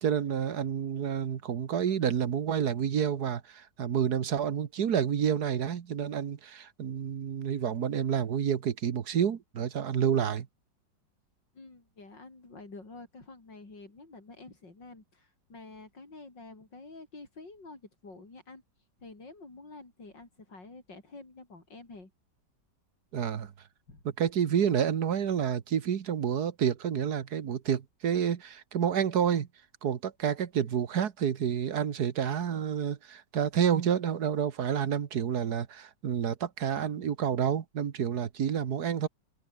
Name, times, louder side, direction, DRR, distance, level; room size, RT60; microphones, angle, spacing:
voice 1, 0.0-10.5 23.1-23.5 24.2-29.5 29.8-39.1, right 8 dB, 60° right, 1.8 m, -29 dB
voice 2, 11.5-18.6 19.0-22.1 23.9-24.0, left 3 dB, 85° left, 6.1 m, -49 dB
open air
omnidirectional pair, 1.9 m